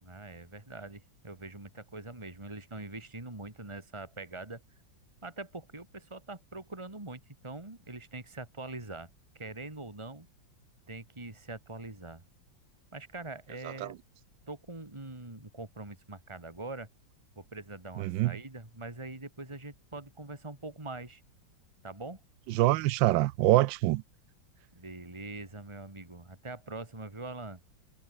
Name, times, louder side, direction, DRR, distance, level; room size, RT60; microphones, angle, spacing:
voice 1, 0.0-4.6 5.2-9.1 9.3-10.3 10.9-12.2 12.9-14.0 14.5-16.9 17.3-21.2 21.8-22.2 24.7-27.6, right 2 dB, 15° right, 3.1 m, -43 dB
voice 2, 18.0-18.3 22.5-24.0, right 16 dB, 80° right, 1.3 m, -25 dB
omnidirectional pair, 2.1 m